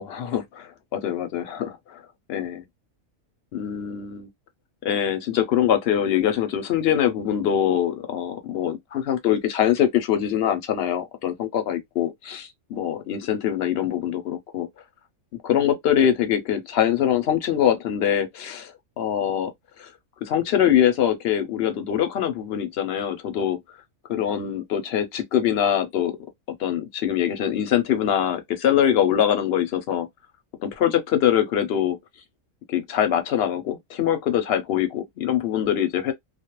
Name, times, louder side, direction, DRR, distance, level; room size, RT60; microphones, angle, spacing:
voice 1, 0.0-2.0 2.3-2.6 3.5-4.3 4.8-14.7 15.4-19.5 19.8-19.9 20.2-23.6 24.1-26.2 26.6-30.1 30.6-32.0 32.7-36.1, left 10 dB, 60° left, 0.7 m, -23 dB
2.3 x 2.0 x 2.9 m
omnidirectional pair, 1.4 m